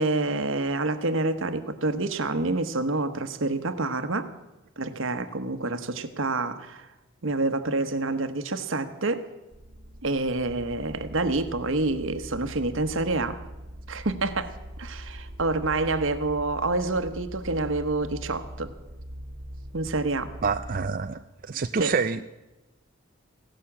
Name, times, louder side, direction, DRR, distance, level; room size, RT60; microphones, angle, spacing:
voice 1, 0.0-4.3 4.8-6.9 7.2-9.3 10.0-13.4 13.9-14.5 14.8-18.7 19.7-20.3 21.8-21.9, right 2 dB, 80° right, 10 dB, 1.2 m, -27 dB
sound 1, 9.5-20.9, equal, 60° right, 1.4 m, -42 dB
voice 2, 20.4-22.2, right 5 dB, 45° right, 9 dB, 0.4 m, -27 dB
16.5 x 11.5 x 7.3 m, 1.0 s
head